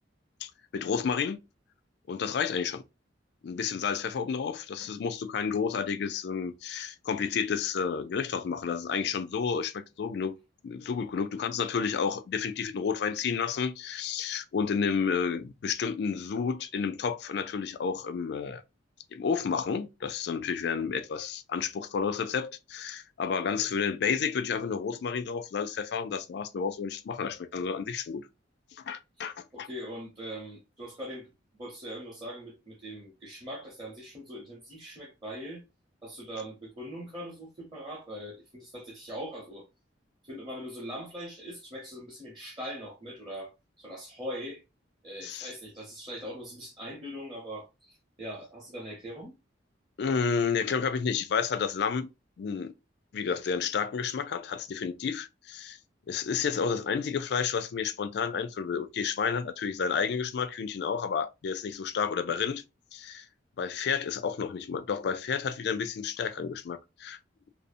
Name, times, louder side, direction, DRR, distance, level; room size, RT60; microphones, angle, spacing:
voice 1, 0.4-1.4 2.1-2.8 3.4-10.3 10.6-18.6 19.1-28.2 28.8-29.7 45.2-45.5 50.0-52.1 52.4-52.7 53.1-55.8 56.1-62.6 62.9-63.3 63.6-67.2, left 6 dB, 60° left, 0.3 m, -31 dB
voice 2, 29.5-31.3 31.6-35.6 36.0-39.7 40.2-43.5 43.8-44.6 45.0-47.9 48.2-49.3, equal, 25° right, 0.8 m, -41 dB
2.6 x 2.0 x 2.5 m
head